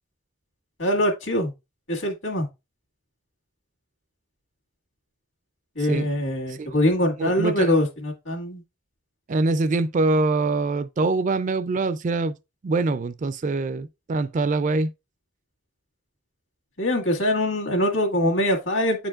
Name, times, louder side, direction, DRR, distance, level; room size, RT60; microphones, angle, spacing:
voice 1, 0.8-1.5 1.9-2.5 5.8-8.6 16.8-19.1, left 1 dB, 60° left, 1.9 m, -23 dB
voice 2, 7.2-7.7 9.3-12.4 12.6-14.9, right 3 dB, 40° right, 0.3 m, -24 dB
9.3 x 4.4 x 2.4 m
head